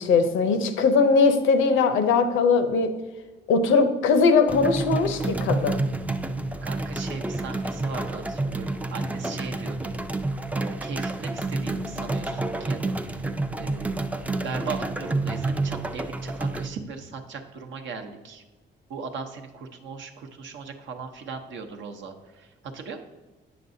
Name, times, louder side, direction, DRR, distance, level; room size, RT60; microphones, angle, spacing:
voice 1, 0.0-2.9 3.5-5.8, left 4 dB, 85° left, 9 dB, 0.7 m, -20 dB
sound 1, 4.5-16.7, right 2 dB, 5° right, 0.3 m, -29 dB
voice 2, 6.6-9.9 10.5-13.2 13.6-14.0 14.4-18.4 18.9-22.5 22.7-23.0, right 5 dB, 70° right, 5 dB, 0.8 m, -38 dB
7.8 x 6.0 x 2.6 m, 1.2 s
cardioid pair, 90°, 20 cm